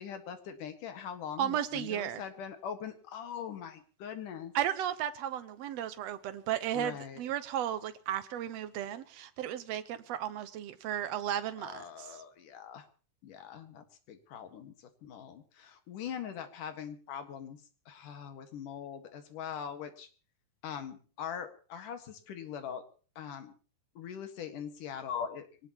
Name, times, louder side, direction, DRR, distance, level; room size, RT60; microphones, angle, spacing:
voice 1, 0.0-4.5 6.7-7.2 11.6-12.9 13.2-17.6 17.9-20.1 20.6-22.8 23.2-23.5 24.0-25.7, left 8 dB, 70° left, 3.2 m, -42 dB
voice 2, 1.4-2.2 4.5-12.2, right 10 dB, 65° right, 1.8 m, -34 dB
23.5 x 18.0 x 3.0 m
omnidirectional pair, 3.9 m